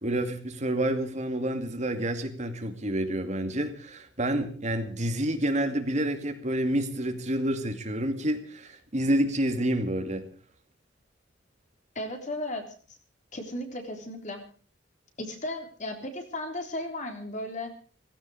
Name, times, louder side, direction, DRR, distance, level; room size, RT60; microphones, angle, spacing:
voice 1, 0.0-10.2, right 1 dB, 40° right, 6 dB, 2.4 m, -28 dB
voice 2, 12.0-12.7 13.3-14.4 15.2-17.7, left 1 dB, 40° left, 4 dB, 3.8 m, -35 dB
17.5 x 16.0 x 4.9 m, 0.42 s
head